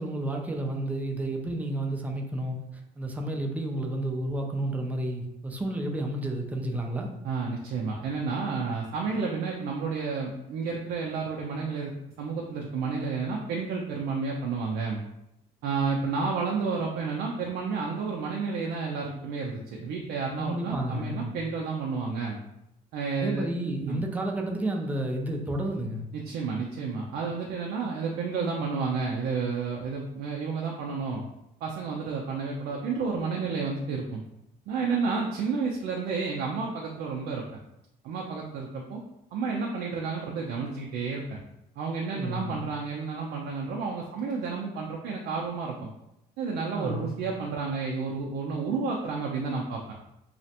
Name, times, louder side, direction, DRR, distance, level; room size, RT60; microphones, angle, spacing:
voice 1, 0.0-2.6 3.0-7.1 20.4-21.3 23.2-26.0 42.1-42.6 46.7-47.1, right 1 dB, 10° right, 1 dB, 0.3 m, -31 dB
voice 2, 7.2-11.9 12.2-15.0 15.6-22.4 22.9-23.5 23.8-24.0 26.1-31.2 31.6-34.2 34.7-37.5 38.0-39.0 39.3-41.4 41.8-45.9 46.4-49.9, right 4 dB, 80° right, -1 dB, 0.4 m, -31 dB
2.4 x 2.1 x 2.7 m, 0.83 s
cardioid pair, 110°, 17 cm